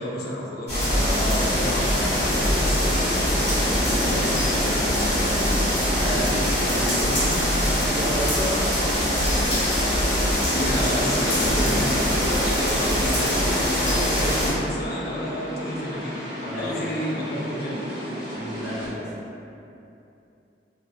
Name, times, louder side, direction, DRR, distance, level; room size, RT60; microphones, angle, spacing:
voice 1, 0.0-1.8 3.9-4.7 6.7-6.9 10.5-13.3 13.7-17.8, equal, 60° left, -4 dB, 0.4 m, -31 dB
sound 1, 0.7-14.5, equal, 35° left, 1.2 m, -22 dB
voice 2, 0.9-1.7 2.0-2.1 2.4-2.9 5.9-7.4 7.7-9.0 13.0-13.8 16.4-16.7 18.3-19.1, equal, 75° right, -9 dB, 0.8 m, -33 dB
sound 2, 2.2-18.9, equal, 30° right, 1.1 m, -34 dB
2.4 x 2.4 x 2.2 m, 2.7 s
head